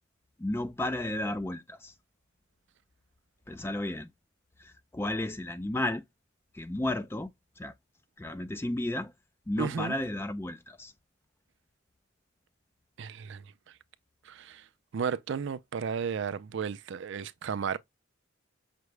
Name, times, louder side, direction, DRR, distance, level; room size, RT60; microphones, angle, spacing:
voice 1, 0.4-1.9 3.5-4.1 4.6-6.0 6.5-7.3 7.6-7.7 8.2-9.1 9.5-10.9, left 1 dB, 10° left, 0.3 m, -33 dB
voice 2, 9.6-10.0 13.0-13.4 14.3-14.6 14.9-17.8, right 6 dB, 60° right, 0.4 m, -33 dB
5.8 x 2.1 x 3.1 m
head